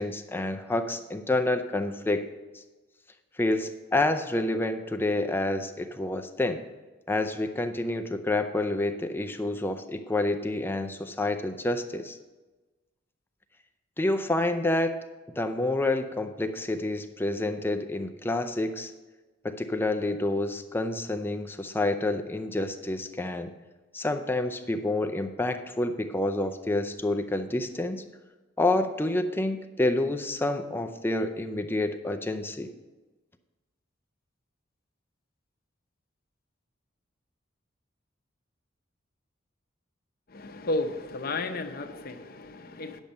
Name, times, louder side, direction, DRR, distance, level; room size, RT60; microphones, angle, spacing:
voice 1, 0.0-2.3 2.5-2.6 3.4-6.6 7.1-12.2 14.0-15.0 15.4-18.9 19.4-23.5 23.9-28.0 28.6-32.7, left 2 dB, 10° left, 7 dB, 0.5 m, -28 dB
voice 2, 40.3-43.0, left 2 dB, 50° left, 7 dB, 0.8 m, -33 dB
10.0 x 7.2 x 5.4 m, 1.2 s
head